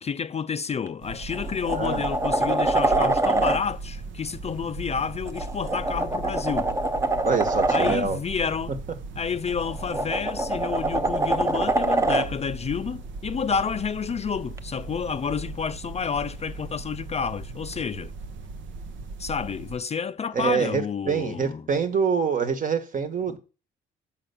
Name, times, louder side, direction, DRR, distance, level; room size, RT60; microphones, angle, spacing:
voice 1, 0.0-6.7 7.7-8.8 9.2-18.1 19.2-21.6, left 6 dB, 35° left, 0.4 m, -30 dB
sound 1, 0.7-0.9 1.3-3.6 5.3-8.0 9.5-12.3 14.6-14.7, right 2 dB, 15° right, 0.7 m, -24 dB
sound 2, 1.0-19.8, right 3 dB, 70° right, 0.9 m, -38 dB
voice 2, 1.7-2.0 7.2-8.2 20.3-23.4, right 6 dB, 40° right, 1.4 m, -25 dB
5.7 x 5.5 x 6.8 m
cardioid pair, 90°, 20 cm